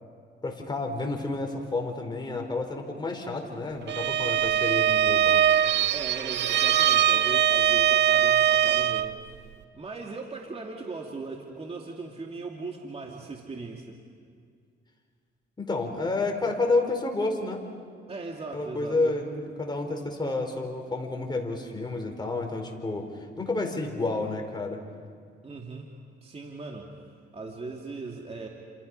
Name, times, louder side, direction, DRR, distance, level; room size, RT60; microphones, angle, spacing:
voice 1, 0.4-5.4 15.6-17.6 18.5-23.1 23.4-24.8, left 2 dB, 20° left, 2 dB, 4.6 m, -30 dB
Bowed string instrument, 3.9-9.1, right 10 dB, 60° right, 0.7 m, -22 dB
voice 2, 5.9-9.5 9.7-14.0 18.1-19.2 25.4-26.9 27.3-28.5, right 3 dB, 30° right, 0 dB, 2.6 m, -39 dB
29.5 x 27.5 x 5.6 m, 2.2 s
cardioid pair, 90°, 20 cm